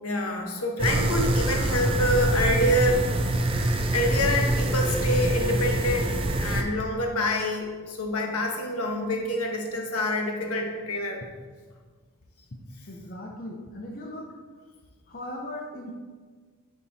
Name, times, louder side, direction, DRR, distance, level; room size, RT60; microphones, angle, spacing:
voice 1, 0.0-3.1 3.9-6.1 6.4-11.2, left 1 dB, 80° left, 2 dB, 1.2 m, -26 dB
sound 1, 0.8-6.6, right 1 dB, 25° right, 0.5 m, -25 dB
voice 2, 12.9-14.3 15.1-16.0, left 1 dB, 40° left, 0 dB, 0.7 m, -38 dB
8.7 x 4.5 x 4.1 m, 1.5 s
head